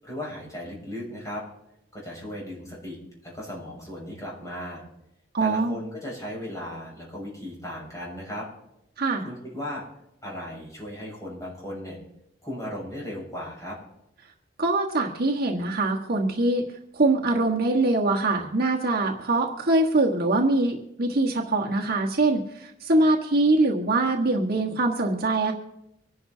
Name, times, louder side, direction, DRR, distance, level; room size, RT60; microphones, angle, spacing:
voice 1, 0.0-1.4 1.9-4.8 5.4-8.5 9.2-9.8 10.2-12.0 12.4-13.8, left 1 dB, 20° left, -4 dB, 7.0 m, -36 dB
voice 2, 5.3-5.8 9.0-9.2 14.6-16.6 16.9-25.5, right 2 dB, 55° right, 0 dB, 1.4 m, -23 dB
25.5 x 11.5 x 2.8 m, 0.84 s
head